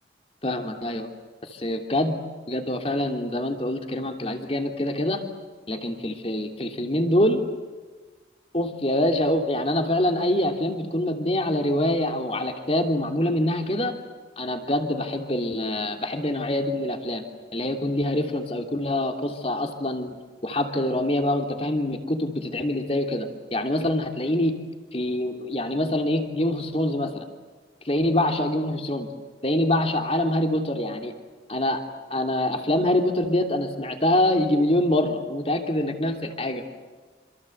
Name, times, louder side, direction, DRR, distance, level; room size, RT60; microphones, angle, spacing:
voice 1, 0.4-1.1 1.5-2.2 2.5-5.2 5.7-7.4 8.5-13.9 14.4-17.2 17.5-20.1 20.4-24.5 24.9-27.2 27.8-29.1 29.4-31.1 31.5-31.8 32.1-36.6, left 1 dB, 30° left, 4 dB, 3.1 m, -25 dB
27.0 x 27.0 x 8.0 m, 1.4 s
head